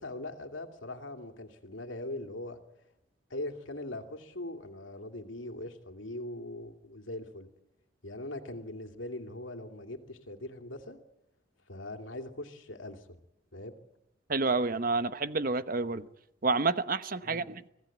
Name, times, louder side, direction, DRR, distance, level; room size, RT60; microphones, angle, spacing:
voice 1, 0.0-2.6 3.3-7.5 8.0-11.0 11.7-13.1 13.5-13.8 17.2-17.5, left 1 dB, 80° left, 2.7 m, -41 dB
voice 2, 14.3-16.1 16.4-17.7, right 3 dB, 45° right, 1.0 m, -29 dB
25.0 x 17.0 x 8.6 m
head